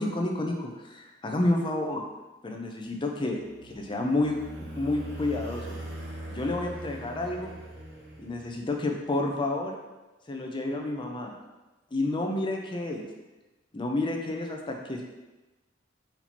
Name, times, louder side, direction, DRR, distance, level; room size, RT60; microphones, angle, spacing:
voice 1, 0.0-2.0 2.4-4.4 4.7-5.8 6.3-7.5 8.2-9.8 10.3-11.3 11.9-13.1 13.7-15.0, left 2 dB, 25° left, 1 dB, 0.5 m, -30 dB
sound 1, 3.1-8.8, right 1 dB, 60° right, 0.8 m, -41 dB
4.4 x 2.8 x 4.2 m, 1.1 s
head